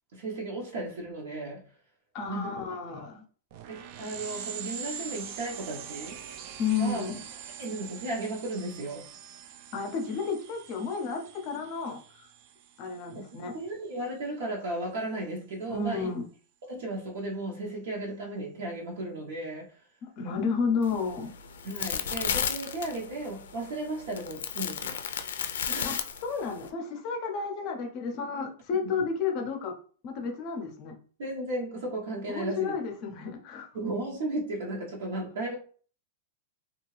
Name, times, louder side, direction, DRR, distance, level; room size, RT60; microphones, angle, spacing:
voice 1, 0.1-1.7 2.3-2.6 2.9-3.1 3.7-6.2 6.8-7.1 7.6-9.1 13.1-16.1 16.7-19.7 21.6-25.0 25.7-26.1 28.8-29.0 31.2-32.7 33.7-35.6, right 2 dB, 60° right, 0.9 m, -35 dB
voice 2, 2.1-3.2 6.6-7.2 9.7-12.0 12.8-13.5 15.7-16.3 20.0-21.3 25.8-29.8 30.0-31.0 32.3-33.7, left 5 dB, 30° left, 0.6 m, -31 dB
sound 1, 3.5-13.6, right 7 dB, 40° right, 0.3 m, -43 dB
sound 2, 20.8-26.7, left 8 dB, 85° left, 0.4 m, -34 dB
2.7 x 2.3 x 3.2 m
supercardioid pair, 170°, 0 cm